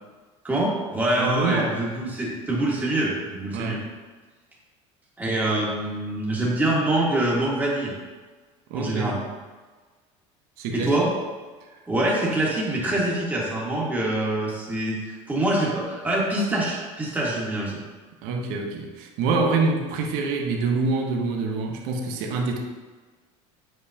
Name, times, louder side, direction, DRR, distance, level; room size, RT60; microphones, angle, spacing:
voice 1, 0.4-3.8 5.2-7.9 8.7-9.2 10.7-11.1 11.9-17.8, right 1 dB, 10° right, -5 dB, 1.7 m, -25 dB
voice 2, 1.2-1.7 3.5-3.9 8.7-9.2 10.6-11.1 18.2-22.6, right 3 dB, 70° right, 2 dB, 1.0 m, -26 dB
7.8 x 5.1 x 2.8 m, 1.4 s
supercardioid pair, 105°, 16 cm